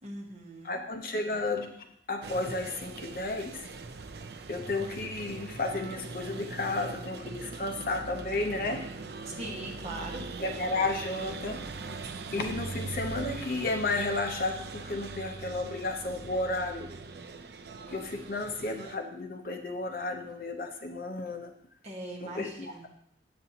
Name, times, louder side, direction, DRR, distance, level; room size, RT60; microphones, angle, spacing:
voice 1, 0.0-0.8 9.2-10.2 21.8-22.9, right 1 dB, 35° right, -2 dB, 1.4 m, -40 dB
voice 2, 0.6-3.6 4.5-8.9 10.4-11.7 12.3-16.9 17.9-21.5 22.2-22.5, left 2 dB, 50° left, 4 dB, 0.7 m, -32 dB
sound 1, 2.2-19.0, right 3 dB, 65° right, 0.5 m, -41 dB
8.0 x 6.8 x 2.8 m, 0.69 s
head